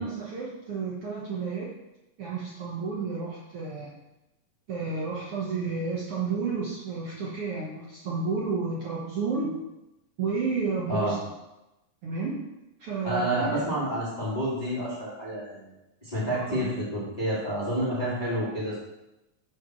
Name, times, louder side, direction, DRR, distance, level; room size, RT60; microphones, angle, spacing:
voice 1, 0.0-1.7 2.2-3.9 4.7-9.5 10.2-11.2 12.0-12.4 12.8-13.9 16.3-16.7, right 4 dB, 65° right, -5 dB, 1.4 m, -31 dB
voice 2, 13.0-15.7 16.0-18.8, right 1 dB, 10° left, -9 dB, 2.3 m, -29 dB
6.3 x 4.8 x 6.3 m, 0.96 s
omnidirectional pair, 3.9 m